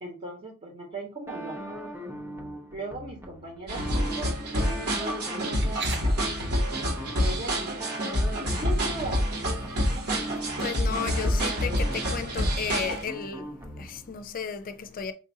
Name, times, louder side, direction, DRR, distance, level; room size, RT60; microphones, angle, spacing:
voice 1, 0.0-1.8 2.7-6.2 7.1-8.0 8.4-9.6 9.9-10.4, right 2 dB, 35° right, 1.1 m, -38 dB
sound 1, 1.3-14.2, equal, 10° right, 0.7 m, -40 dB
sound 2, 3.7-13.0, equal, 70° right, 1.8 m, -27 dB
sound 3, 5.4-6.0 7.8-7.9 8.2-8.7 9.7-10.7, right 5 dB, 50° right, 0.6 m, -39 dB
voice 2, 10.6-15.1, left 6 dB, 40° left, 0.4 m, -34 dB
5.4 x 2.6 x 2.7 m
head